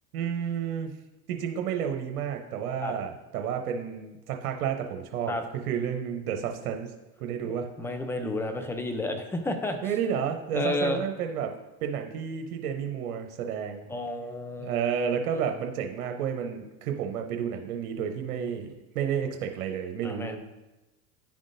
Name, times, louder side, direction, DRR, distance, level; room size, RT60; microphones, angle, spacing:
voice 1, 0.1-0.9 1.3-6.9 7.2-7.7 9.8-11.6 11.8-13.9 14.6-20.4, right 8 dB, 80° right, 4 dB, 0.8 m, -31 dB
voice 2, 7.8-9.8 10.5-11.0 13.9-14.8 20.0-20.4, left 2 dB, 5° left, 6 dB, 0.5 m, -31 dB
10.0 x 3.6 x 2.6 m, 1.0 s
hypercardioid pair, 95°, 44 cm